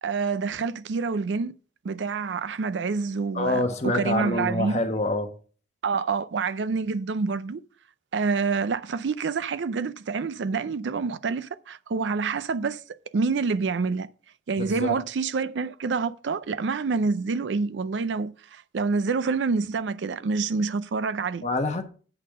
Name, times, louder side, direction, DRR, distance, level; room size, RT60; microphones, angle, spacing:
voice 1, 0.0-1.5 1.8-4.8 5.8-7.6 8.1-12.8 13.1-14.1 14.5-21.4, right 4 dB, 85° right, 0.4 m, -27 dB
voice 2, 3.3-5.3 14.6-14.9 21.4-21.8, left 2 dB, 40° left, 1.1 m, -26 dB
8.5 x 4.2 x 6.4 m
head